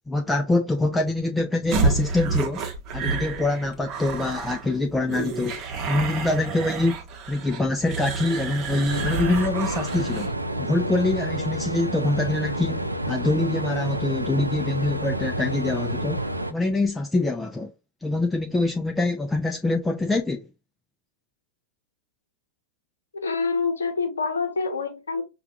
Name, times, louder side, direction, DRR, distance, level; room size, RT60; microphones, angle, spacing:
voice 1, 0.1-2.7 2.9-5.6 5.9-7.0 7.3-10.3 10.6-16.2 16.5-17.7 18.0-20.5, left 2 dB, 10° left, 0.4 m, -25 dB
sound 1, 1.7-10.4, right 4 dB, 35° right, 0.8 m, -29 dB
sound 2, 8.9-16.5, right 1 dB, 85° right, 0.4 m, -29 dB
voice 2, 23.1-25.2, left 4 dB, 70° left, 0.7 m, -26 dB
5.7 x 2.3 x 2.4 m
figure-of-eight pair, 90°, 0 cm